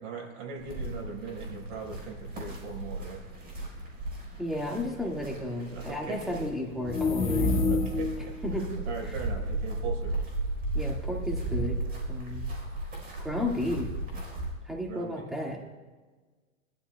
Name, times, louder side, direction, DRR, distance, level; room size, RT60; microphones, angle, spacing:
voice 1, 0.0-3.2 5.7-6.2 7.7-10.1 14.9-15.3, right 5 dB, 65° right, 0 dB, 4.6 m, -39 dB
sound 1, 0.6-14.5, right 2 dB, 25° right, 4.1 m, -35 dB
voice 2, 4.4-7.5 8.4-8.6 9.0-9.1 10.7-11.8 12.1-12.5 13.2-13.9 14.7-15.6, left 1 dB, ahead, -1 dB, 1.9 m, -33 dB
sound 2, 6.8-8.3, left 3 dB, 15° left, 1.7 m, -27 dB
21.0 x 12.5 x 2.3 m, 1.3 s
hypercardioid pair, 130°, 39 cm